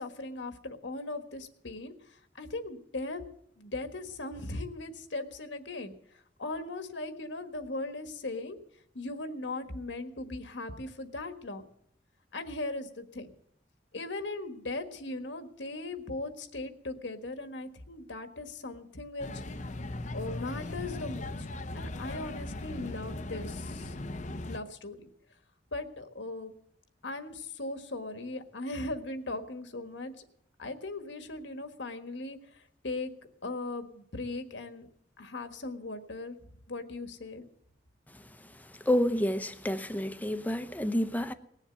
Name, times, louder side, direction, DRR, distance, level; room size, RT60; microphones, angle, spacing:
voice 1, 0.0-1.9 2.3-3.2 3.6-5.9 6.4-8.6 8.9-11.6 12.3-13.3 13.9-19.4 20.1-21.4 21.7-25.0 25.7-26.5 27.0-30.2 30.6-32.4 32.8-33.1 33.4-34.9 35.2-36.4 36.7-37.4, left 2 dB, 80° left, 1.5 m, -38 dB
sound 1, 19.2-24.6, left 2 dB, 40° left, 0.7 m, -38 dB
voice 2, 38.8-41.3, left 1 dB, 10° left, 0.8 m, -29 dB
19.0 x 7.3 x 9.2 m
head